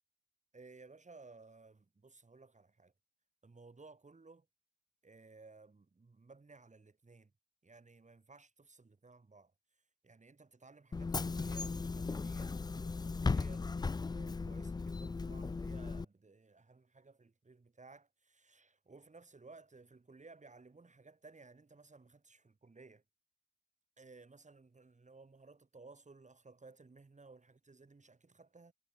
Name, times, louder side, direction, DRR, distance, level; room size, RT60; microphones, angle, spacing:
voice 1, 0.5-2.9 3.4-4.5 5.0-7.3 7.6-9.5 10.0-23.0 24.0-28.7, right 3 dB, 25° right, 6.2 m, -58 dB
Bus / Engine, 10.9-16.0, left 4 dB, 15° left, 0.4 m, -37 dB
cardioid pair, 90°, 30 cm